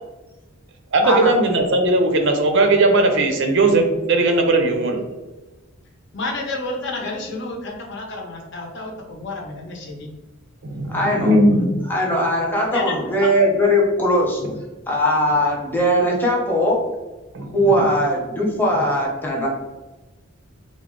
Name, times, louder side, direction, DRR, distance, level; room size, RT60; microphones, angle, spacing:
voice 1, 0.9-5.0 10.6-11.8 17.3-17.5, right 2 dB, 60° right, 5 dB, 0.5 m, -18 dB
voice 2, 6.1-10.1 12.7-12.9 13.2-13.3, left 2 dB, 60° left, 0 dB, 0.7 m, -30 dB
voice 3, 10.9-11.3 11.9-14.4 14.9-16.8 17.5-19.5, equal, 10° left, -3 dB, 0.7 m, -19 dB
3.6 x 2.1 x 3.5 m, 1.1 s
head